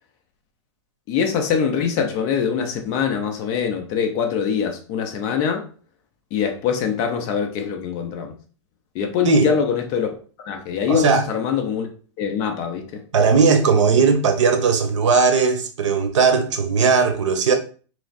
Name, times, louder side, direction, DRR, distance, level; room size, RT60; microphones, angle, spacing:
voice 1, 1.1-5.7 6.3-8.3 8.9-10.1 10.5-11.9 12.2-13.0, left 7 dB, 20° left, 0.4 m, -23 dB
voice 2, 10.9-11.2 13.1-17.5, right 5 dB, 75° right, 0.9 m, -17 dB
3.4 x 3.0 x 3.9 m
supercardioid pair, 170°, 16 cm